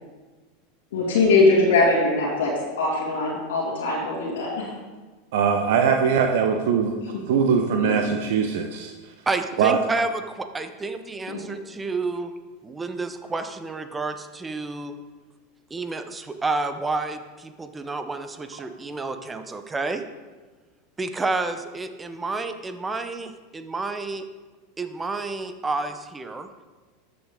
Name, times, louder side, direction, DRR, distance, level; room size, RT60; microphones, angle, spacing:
voice 1, 0.9-4.7 7.8-7.9 11.3-11.4, left 3 dB, 75° left, -5 dB, 2.4 m, -21 dB
voice 2, 5.3-7.0 7.3-8.9 9.6-9.8 18.5-18.6, right 6 dB, 65° right, 4 dB, 0.7 m, -21 dB
voice 3, 9.3-12.3 12.6-15.0 15.7-20.0 21.0-24.3 24.8-26.5, right 3 dB, 15° right, 9 dB, 0.8 m, -30 dB
13.5 x 6.0 x 3.8 m, 1.3 s
hypercardioid pair, 90°, 0 cm